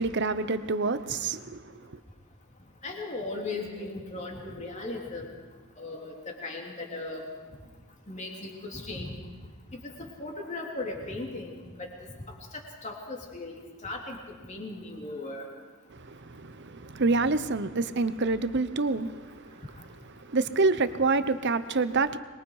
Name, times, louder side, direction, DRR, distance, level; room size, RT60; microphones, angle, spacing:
voice 1, 0.0-1.6 15.9-19.5 20.3-22.2, right 3 dB, 50° right, 0.8 m, -27 dB
voice 2, 2.8-5.3 5.8-6.1 6.4-7.3 8.1-9.2 9.7-11.5 11.8-11.9 12.8-14.2 14.5-15.5, left 2 dB, 30° left, 3.2 m, -37 dB
25.0 x 21.5 x 4.9 m
head